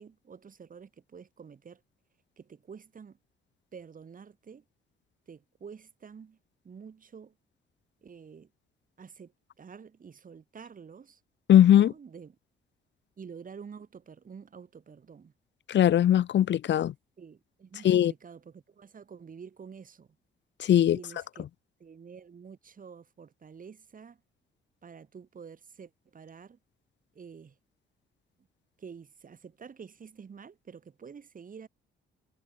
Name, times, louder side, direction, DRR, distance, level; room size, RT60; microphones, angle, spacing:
voice 1, 0.0-1.8 2.4-3.2 3.7-4.6 5.3-6.4 6.6-7.3 8.0-8.5 9.0-9.3 9.6-11.2 11.7-12.4 13.2-15.3 17.2-20.1 20.8-21.5 21.8-24.2 24.8-26.6 27.1-27.5 28.8-31.7, right 6 dB, 45° right, 6.4 m, -48 dB
voice 2, 11.5-11.9 15.7-16.9 17.8-18.1 20.6-21.0, left 11 dB, 65° left, 1.4 m, -20 dB
cardioid pair, 90°, 20 cm